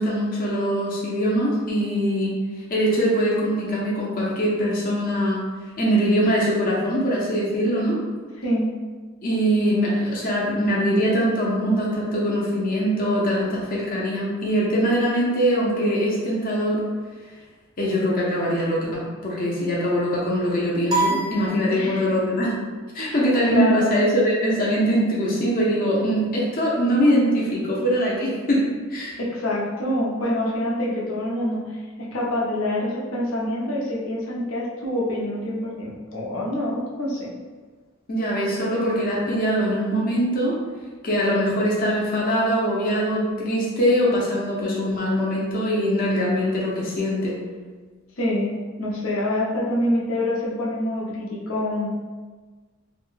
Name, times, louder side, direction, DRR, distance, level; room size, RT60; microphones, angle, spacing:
voice 1, 0.0-2.4 2.7-5.5 5.8-8.0 9.2-16.8 17.8-22.6 22.9-29.2 38.1-40.6 41.0-47.4, equal, 45° left, -4 dB, 0.6 m, -22 dB
sound 1, 20.9-22.3, right 2 dB, 20° right, 0.5 m, -26 dB
voice 2, 21.7-22.1 23.0-23.9 29.2-31.7 32.0-37.3 48.2-51.9, left 1 dB, 90° left, -5 dB, 0.7 m, -26 dB
2.8 x 2.2 x 3.1 m, 1.4 s
head